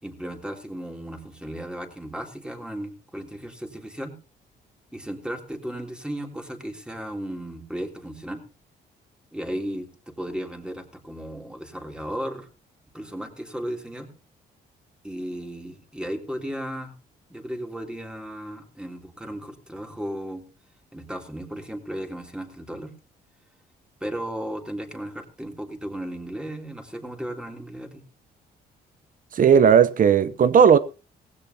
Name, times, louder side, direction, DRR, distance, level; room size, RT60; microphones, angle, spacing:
voice 1, 0.0-4.1 4.9-8.4 9.3-12.5 12.9-14.1 15.0-16.9 17.3-20.4 20.9-22.9 24.0-28.0, equal, 5° right, 3.2 m, -35 dB
voice 2, 29.3-30.8, right 7 dB, 50° right, 0.8 m, -16 dB
17.0 x 16.0 x 2.9 m
cardioid pair, 85°, 18 cm